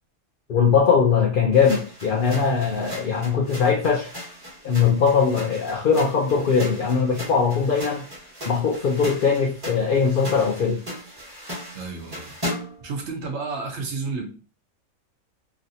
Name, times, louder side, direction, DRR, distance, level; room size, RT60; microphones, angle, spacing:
voice 1, 0.5-4.1 4.6-8.0 8.4-10.8, left 6 dB, 85° left, 0.4 m, -20 dB
sound 1, 1.5-12.9, equal, 20° right, 1.1 m, -37 dB
voice 2, 11.7-12.3 12.8-14.3, right 4 dB, 60° right, 0.9 m, -31 dB
3.2 x 2.6 x 2.6 m
omnidirectional pair, 1.5 m